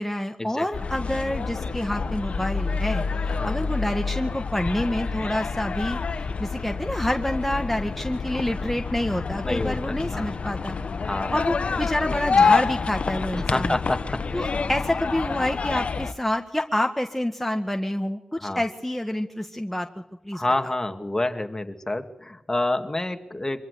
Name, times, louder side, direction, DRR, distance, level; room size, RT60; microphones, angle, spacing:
voice 1, 0.0-10.7 11.3-13.8 14.3-20.7, left 1 dB, 5° left, 4 dB, 1.7 m, -28 dB
sound 1, 0.7-16.1, left 4 dB, 80° left, 1.1 m, -27 dB
voice 2, 9.4-10.3 11.1-11.3 13.5-14.5 18.4-18.6 20.3-23.7, left 2 dB, 25° left, 6 dB, 2.3 m, -28 dB
25.0 x 15.0 x 8.1 m, 0.94 s
cardioid pair, 50°, 2 cm